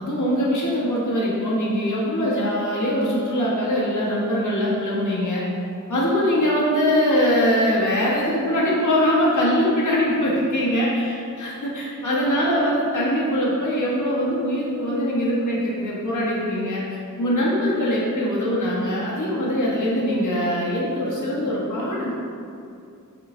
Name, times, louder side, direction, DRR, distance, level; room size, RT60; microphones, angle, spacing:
voice 1, 0.0-5.4 5.9-16.8 17.2-22.2, equal, 65° left, -5 dB, 1.4 m, -22 dB
7.8 x 6.3 x 2.7 m, 2.5 s
wide cardioid pair, 110°, 32 cm